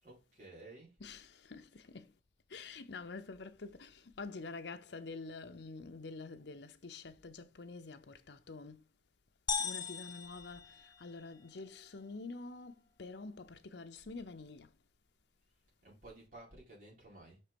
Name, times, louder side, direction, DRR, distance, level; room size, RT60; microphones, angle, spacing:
voice 1, 0.0-1.0 15.8-17.4, right 2 dB, 50° right, 4.1 m, -54 dB
voice 2, 1.0-2.2 2.5-8.9 9.6-14.8, left 3 dB, 75° left, 0.7 m, -47 dB
sound 1, 9.5-11.4, left 6 dB, 25° left, 0.4 m, -39 dB
6.0 x 4.3 x 5.2 m
head